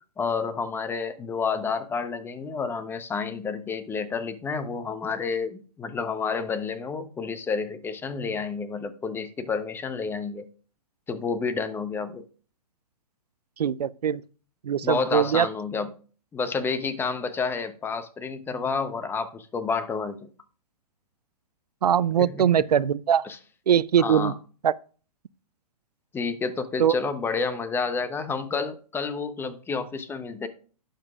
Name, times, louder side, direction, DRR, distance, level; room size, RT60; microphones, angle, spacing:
voice 1, 0.2-10.5 11.1-12.2 14.8-15.9 16.3-20.3 22.2-22.5 23.2-23.4 24.0-24.3 26.1-30.5, left 5 dB, 10° left, 0.7 m, -30 dB
voice 2, 13.6-14.2 14.6-15.5 21.8-23.3 23.7-24.3 24.6-24.7 26.8-27.0, right 9 dB, 80° right, 0.4 m, -21 dB
12.0 x 8.9 x 2.4 m
hypercardioid pair, 125°, 20 cm